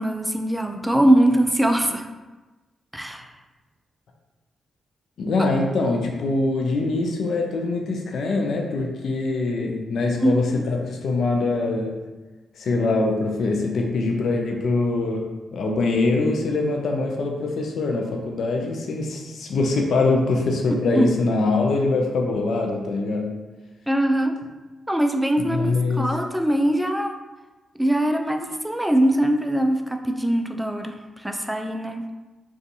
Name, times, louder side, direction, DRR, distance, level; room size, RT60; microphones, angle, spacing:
voice 1, 0.0-2.1 2.9-3.2 10.2-10.7 20.9-21.1 23.9-24.4 24.9-27.1 27.8-32.0, right 1 dB, 10° right, 5 dB, 0.3 m, -22 dB
voice 2, 5.2-12.1 12.6-23.4 25.4-26.2, left 3 dB, 70° left, 1 dB, 0.4 m, -23 dB
2.4 x 2.3 x 2.6 m, 1.2 s
supercardioid pair, 50°, 0 cm